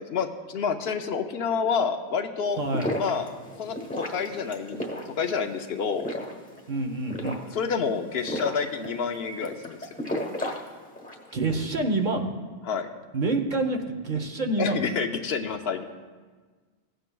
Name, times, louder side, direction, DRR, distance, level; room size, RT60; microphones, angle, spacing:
voice 1, 0.0-2.6 3.0-3.3 3.6-3.8 4.1-4.9 5.2-6.1 7.5-9.8 12.7-12.9 14.6-15.8, left 6 dB, 70° left, 7 dB, 0.8 m, -28 dB
sound 1, 2.5-11.3, left 1 dB, 10° left, 1.1 m, -35 dB
voice 2, 2.6-2.9 6.7-7.4 11.3-12.3 13.1-14.8, right 2 dB, 45° right, 4 dB, 0.9 m, -27 dB
16.0 x 7.9 x 2.3 m, 1.4 s
omnidirectional pair, 1.1 m